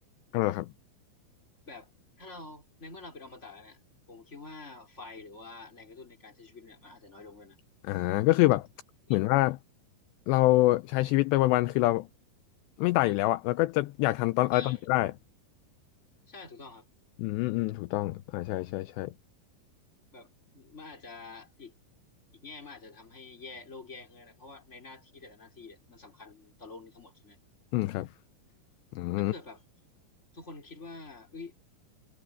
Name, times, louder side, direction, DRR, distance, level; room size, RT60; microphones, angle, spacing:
voice 1, 0.3-0.7 7.9-8.7 9.1-9.6 10.3-12.1 12.8-15.1 17.2-19.1 27.7-28.1 28.9-29.3, left 18 dB, 80° left, 2.6 m, -26 dB
voice 2, 2.2-3.8 4.1-7.6 9.1-9.2 14.5-14.8 16.3-16.9 20.1-21.7 22.3-27.4 29.2-29.6 30.3-31.6, left 3 dB, 15° left, 4.5 m, -47 dB
omnidirectional pair, 5.5 m